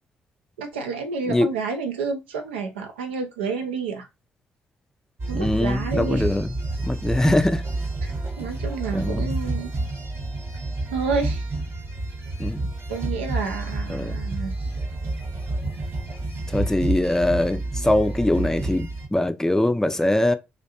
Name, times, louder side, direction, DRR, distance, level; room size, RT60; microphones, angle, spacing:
voice 1, 0.6-4.1 5.3-6.4 8.0-8.1 8.4-9.7 10.9-11.4 12.9-14.7, right 4 dB, 90° right, 0.4 m, -29 dB
sound 1, 5.2-19.1, right 2 dB, 40° right, 0.8 m, -29 dB
voice 2, 5.3-6.5 6.8-7.6 8.9-9.3 12.4-12.7 13.9-14.1 16.5-20.3, left 1 dB, 10° left, 0.4 m, -22 dB
2.5 x 2.1 x 2.8 m
hypercardioid pair, 45°, 6 cm